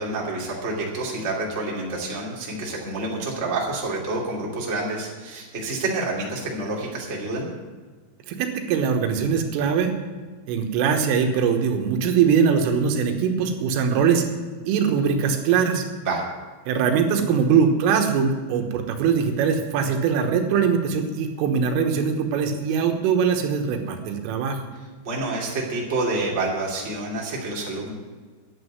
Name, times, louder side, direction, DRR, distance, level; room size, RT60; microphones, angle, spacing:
voice 1, 0.0-7.5 16.0-16.2 25.0-27.9, right 2 dB, 25° right, -3 dB, 1.8 m, -28 dB
voice 2, 8.3-9.9 10.5-14.3 14.7-15.9 16.7-24.6, right 6 dB, 90° right, 5 dB, 3.8 m, -22 dB
10.5 x 8.3 x 9.4 m, 1.4 s
omnidirectional pair, 5.7 m